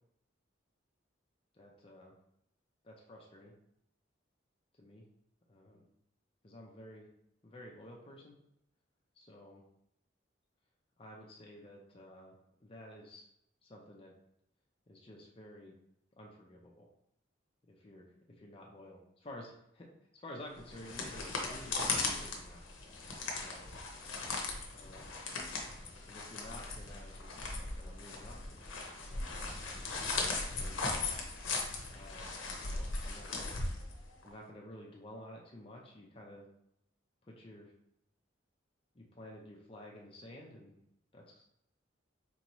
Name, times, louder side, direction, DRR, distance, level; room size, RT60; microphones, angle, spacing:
voice 1, 1.5-2.2 2.8-3.5 4.8-5.0 5.5-5.9 6.4-7.1 7.4-8.4 9.1-9.6 11.0-13.3 13.6-14.1 14.9-15.8 16.2-16.9 17.8-22.6 23.3-23.7 24.7-25.1 26.1-27.4 27.8-28.4 29.0-29.4 30.5-30.8 31.9-33.6 34.2-36.5 37.2-37.7 38.9-40.7 41.1-41.4, left 1 dB, 30° left, -2 dB, 0.5 m, -52 dB
sound 1, 20.6-34.3, left 3 dB, 85° left, 0.8 m, -38 dB
4.5 x 2.8 x 3.0 m, 0.75 s
head